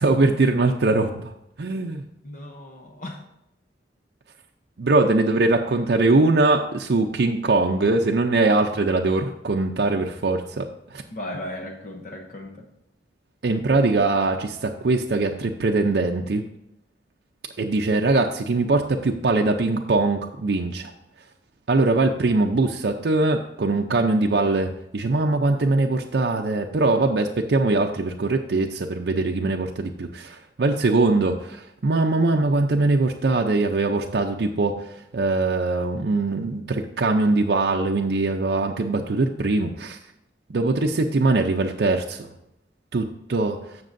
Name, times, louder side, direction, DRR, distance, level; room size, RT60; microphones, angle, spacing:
voice 1, 0.0-1.3 1.6-2.0 4.8-10.7 10.9-11.0 13.4-16.4 17.6-20.9 21.7-34.8 35.1-40.0 40.5-42.3 42.9-43.6, right 3 dB, 65° right, 2 dB, 0.5 m, -22 dB
voice 2, 2.2-3.2 11.1-12.7, left 1 dB, 45° left, 2 dB, 0.8 m, -36 dB
15.0 x 6.0 x 2.6 m, 0.83 s
head